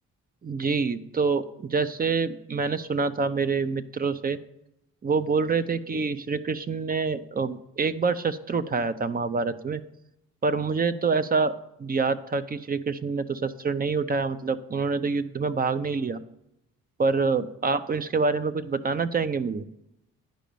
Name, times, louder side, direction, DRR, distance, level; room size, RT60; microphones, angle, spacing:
voice 1, 0.4-4.4 5.0-9.8 10.4-11.5 11.8-16.2 17.0-19.6, right 4 dB, 30° right, 12 dB, 0.6 m, -26 dB
10.5 x 5.1 x 6.9 m, 0.84 s
cardioid pair, 90°, 30 cm